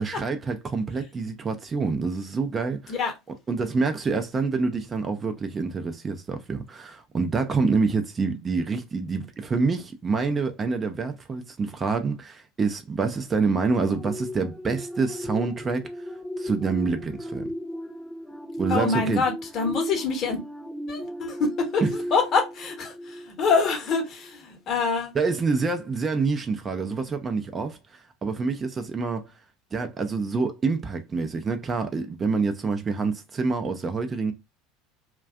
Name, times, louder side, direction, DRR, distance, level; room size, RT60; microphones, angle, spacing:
voice 1, 0.0-3.0 3.5-15.9 16.4-17.4 18.6-19.2 21.8-21.9 25.1-29.3 29.7-34.3, right 4 dB, 25° right, 0.4 m, -27 dB
sound 1, 13.8-23.7 24.1-24.3, equal, 5° left, 0.7 m, -36 dB
voice 2, 18.7-20.4 20.9-25.1, left 4 dB, 40° left, 0.8 m, -26 dB
2.4 x 2.2 x 2.3 m
figure-of-eight pair, 70°, 0 cm